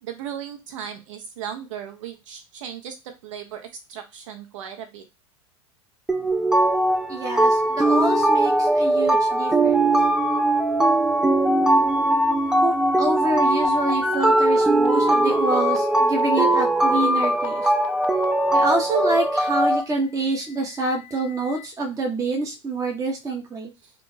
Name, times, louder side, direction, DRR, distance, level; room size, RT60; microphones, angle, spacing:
voice 1, 0.0-5.0 23.8-23.9, right 8 dB, 70° right, 5 dB, 0.8 m, -36 dB
sound 1, 6.1-19.8, right 1 dB, 5° right, 0.3 m, -20 dB
voice 2, 7.1-9.9 12.6-17.7 18.5-23.7, right 2 dB, 20° right, 1 dB, 0.8 m, -27 dB
sound 2, 13.6-18.2 19.4-21.7, left 11 dB, 60° left, 0.5 m, -39 dB
2.4 x 2.4 x 3.2 m, 0.26 s
hypercardioid pair, 90°, 17 cm